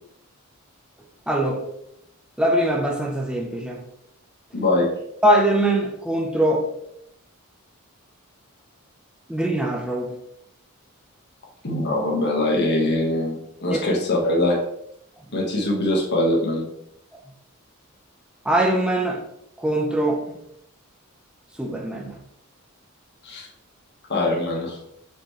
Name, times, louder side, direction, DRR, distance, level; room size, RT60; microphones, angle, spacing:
voice 1, 1.3-1.7 2.4-3.8 5.2-6.7 9.3-10.2 13.7-13.8 18.4-19.2 19.6-20.3 21.6-22.2, right 1 dB, 5° right, 0 dB, 1.0 m, -22 dB
voice 2, 4.5-4.9 11.6-14.6 15.3-16.7 23.2-23.5 24.1-24.8, left 1 dB, 50° left, -2 dB, 1.7 m, -22 dB
6.5 x 5.6 x 3.3 m, 0.75 s
head